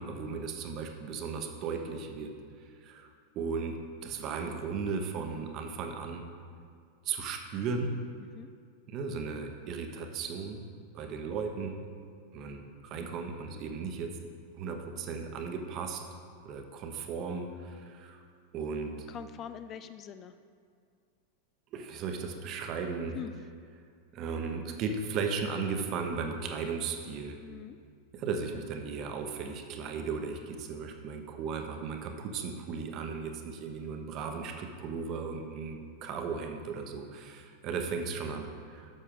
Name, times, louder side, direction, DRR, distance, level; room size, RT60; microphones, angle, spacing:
voice 1, 0.0-2.3 2.8-3.1 3.3-3.8 4.0-6.2 7.0-7.9 8.9-10.6 10.9-11.8 12.3-14.1 14.5-16.0 16.4-18.2 18.5-18.9 21.7-23.2 24.1-27.4 28.1-38.9, right 5 dB, 35° right, 4 dB, 0.9 m, -36 dB
voice 2, 19.1-20.3 23.1-23.3 27.4-27.8, left 8 dB, 30° left, 11 dB, 0.3 m, -42 dB
10.5 x 6.6 x 3.7 m, 2.2 s
figure-of-eight pair, 90°, 0 cm